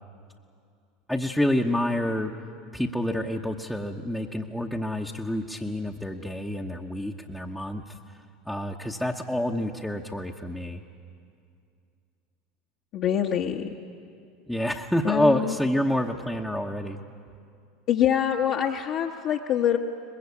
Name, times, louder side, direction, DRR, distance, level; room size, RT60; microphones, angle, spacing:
voice 1, 1.1-2.3 2.7-8.2 8.4-10.8 14.5-17.0, left 1 dB, ahead, -2 dB, 1.1 m, -28 dB
voice 2, 12.9-13.7 15.0-15.5 17.9-19.8, left 9 dB, 55° left, -2 dB, 1.3 m, -25 dB
22.5 x 20.5 x 8.4 m, 2.4 s
hypercardioid pair, 85°, 0 cm